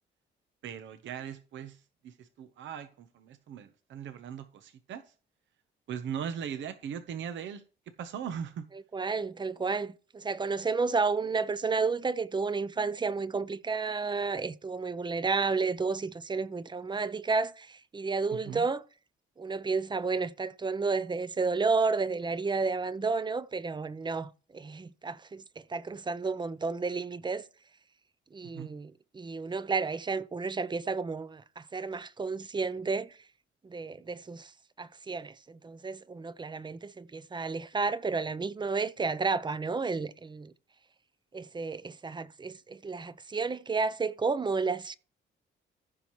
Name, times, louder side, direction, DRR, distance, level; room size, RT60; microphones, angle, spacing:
voice 1, 0.6-5.1 5.9-7.6 8.0-8.7 18.3-18.6 28.5-28.7, right 8 dB, 70° right, 0.9 m, -39 dB
voice 2, 8.9-18.8 19.4-25.4 25.7-27.4 28.3-33.1 33.6-34.5 34.8-40.5 41.3-44.9, right 4 dB, 20° right, 0.6 m, -31 dB
14.5 x 5.7 x 3.1 m
cardioid pair, 90°, 20 cm